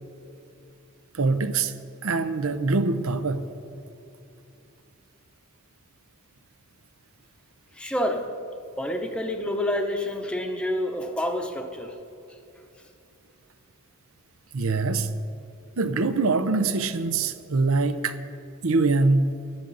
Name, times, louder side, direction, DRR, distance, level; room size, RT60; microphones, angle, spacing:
voice 1, 1.1-1.7 2.0-3.5 14.5-15.1 15.8-18.2 18.6-19.3, right 3 dB, 75° right, 0.7 m, -23 dB
voice 2, 7.7-8.3 8.8-12.0, left 1 dB, 5° left, 0.8 m, -28 dB
18.0 x 13.0 x 4.0 m
head